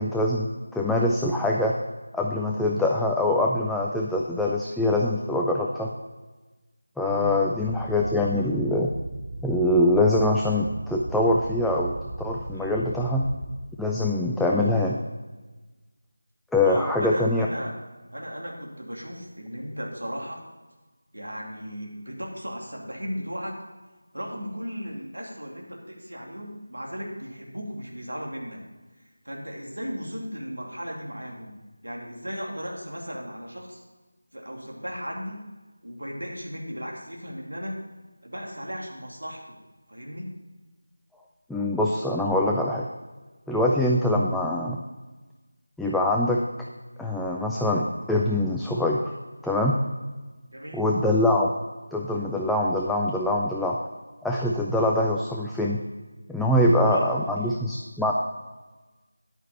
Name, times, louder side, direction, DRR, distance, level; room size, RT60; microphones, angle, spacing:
voice 1, 0.0-1.8 2.1-5.9 7.0-8.9 9.4-13.2 13.8-15.0 16.5-17.5 41.5-42.9 43.5-44.8 45.8-46.4 47.0-49.1 49.4-49.8 50.7-51.5 51.9-53.8 54.2-55.8 56.3-58.1, left 1 dB, ahead, -3 dB, 0.3 m, -24 dB
voice 2, 7.0-7.4 12.5-12.9 16.6-17.8 18.1-20.4 21.1-23.6 24.1-28.6 29.2-31.6 31.8-33.8 34.3-35.4 35.8-37.8 38.2-39.6 39.9-40.3 43.5-43.8 50.5-50.8 56.6-57.5, equal, 70° right, -1 dB, 2.6 m, -36 dB
sound 1, 7.6-13.6, right 2 dB, 25° right, 1.0 m, -36 dB
10.5 x 9.0 x 4.2 m, 1.2 s
figure-of-eight pair, 165°, 0 cm